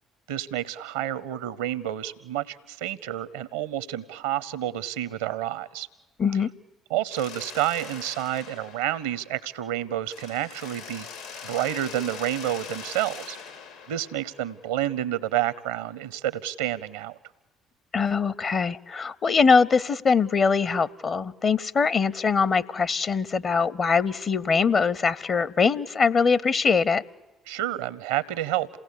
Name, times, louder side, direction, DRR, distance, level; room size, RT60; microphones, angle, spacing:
voice 1, 0.3-5.9 6.9-11.1 11.4-13.4 13.9-17.2 27.5-28.7, right 12 dB, 80° right, 17 dB, 0.8 m, -29 dB
voice 2, 6.2-6.5 17.9-27.0, left 5 dB, 45° left, 21 dB, 0.7 m, -22 dB
Mechanisms, 7.1-9.7 10.1-14.9, left 6 dB, 85° left, 2.3 m, -42 dB
27.5 x 17.5 x 8.4 m, 1.1 s
hypercardioid pair, 50°, 0 cm